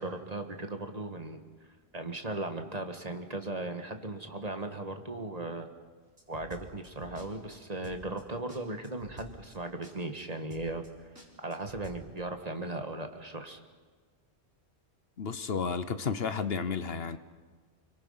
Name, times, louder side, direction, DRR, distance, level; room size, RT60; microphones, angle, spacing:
voice 1, 0.0-1.4 1.9-5.7 6.3-11.1 11.4-13.6, right 2 dB, 35° right, 1.8 m, -37 dB
sound 1, 6.2-7.3 7.5-7.6 7.8-8.2 8.5-8.6 8.8-9.5 9.8-9.9 10.2-10.3 10.5-10.9 11.2-12.0, right 1 dB, 85° right, 4.8 m, -49 dB
voice 2, 15.2-17.2, left 5 dB, 65° left, 1.2 m, -32 dB
29.5 x 23.5 x 5.7 m
omnidirectional pair, 1.1 m